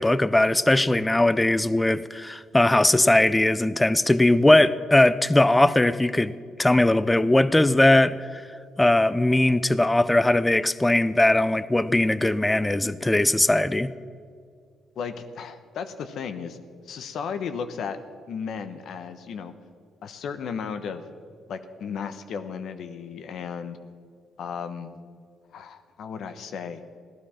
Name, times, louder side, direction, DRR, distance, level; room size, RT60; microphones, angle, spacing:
voice 1, 0.0-8.4 8.8-13.9, left 1 dB, 10° left, 16 dB, 0.5 m, -20 dB
voice 2, 15.0-16.6 16.9-18.0 18.3-19.5 20.0-21.0 21.5-23.8 24.4-25.0 25.5-26.8, left 6 dB, 70° left, 9 dB, 1.0 m, -34 dB
15.5 x 12.0 x 5.8 m, 2.1 s
cardioid pair, 90°, 0 cm